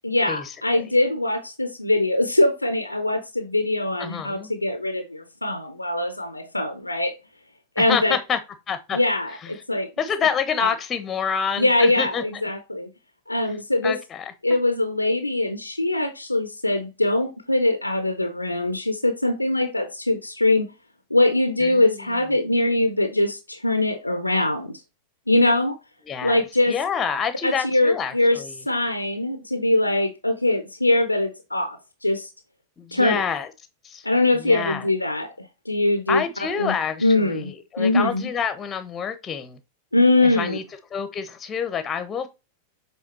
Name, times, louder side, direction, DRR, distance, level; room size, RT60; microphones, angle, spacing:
voice 1, 0.0-7.1 7.8-8.2 8.9-9.9 10.6-10.7 11.6-12.9 13.3-14.0 14.4-20.7 21.1-24.8 25.3-25.8 26.2-26.8 27.4-32.3 32.9-33.2 34.0-36.2 36.6-36.7 37.0-38.2 39.9-40.6, left 2 dB, 85° left, 0.6 m, -22 dB
voice 2, 4.0-4.5 7.8-8.4 8.7-9.0 9.4-9.5 10.0-12.2 13.8-14.3 21.6-22.1 26.1-28.6 32.8-33.5 33.8-34.1 34.3-34.9 36.1-39.6 40.2-40.6 40.9-42.3, left 7 dB, 25° left, 1.0 m, -27 dB
7.6 x 3.5 x 4.3 m
figure-of-eight pair, 90°, 0 cm